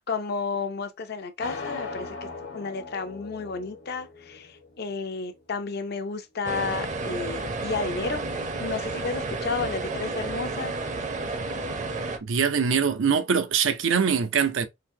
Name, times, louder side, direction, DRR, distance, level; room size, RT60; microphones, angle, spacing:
voice 1, 0.0-8.2 8.6-10.7, left 4 dB, 55° left, 0.6 m, -32 dB
sound 1, 1.4-5.4, left 3 dB, 70° left, 1.3 m, -39 dB
sound 2, 6.4-12.2, right 3 dB, 40° right, 0.6 m, -31 dB
voice 2, 12.2-14.7, right 6 dB, 85° right, 0.6 m, -23 dB
3.9 x 2.7 x 2.7 m
head